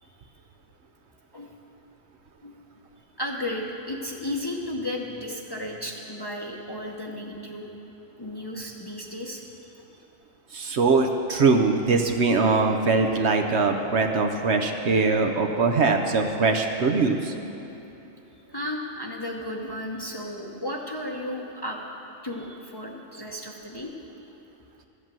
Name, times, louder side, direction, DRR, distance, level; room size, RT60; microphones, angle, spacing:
voice 1, 3.2-7.7 8.2-9.4 18.5-21.8 22.2-23.9, left 1 dB, 20° left, -1 dB, 0.8 m, -34 dB
voice 2, 10.5-17.3, right 4 dB, 60° right, 4 dB, 1.0 m, -22 dB
14.0 x 8.1 x 7.5 m, 2.9 s
omnidirectional pair, 1.4 m